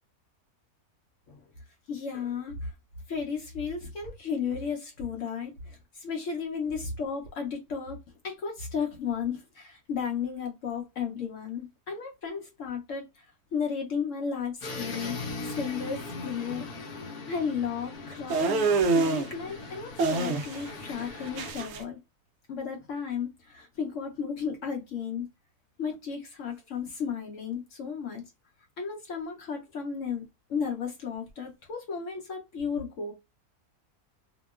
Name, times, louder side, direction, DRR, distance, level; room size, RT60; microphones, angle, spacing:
voice 1, 1.9-2.7 3.1-8.0 8.2-13.0 13.5-15.2 15.4-16.6 17.1-22.0 22.5-25.3 25.8-28.2 28.8-30.2 30.5-33.1, left 6 dB, 65° left, 1.0 m, -34 dB
sound 1, 14.6-21.5, left 3 dB, 85° left, 1.2 m, -40 dB
sound 2, 18.3-19.3 20.0-20.7 21.0-21.8, right 3 dB, 70° right, 0.6 m, -26 dB
2.9 x 2.2 x 2.3 m
omnidirectional pair, 1.6 m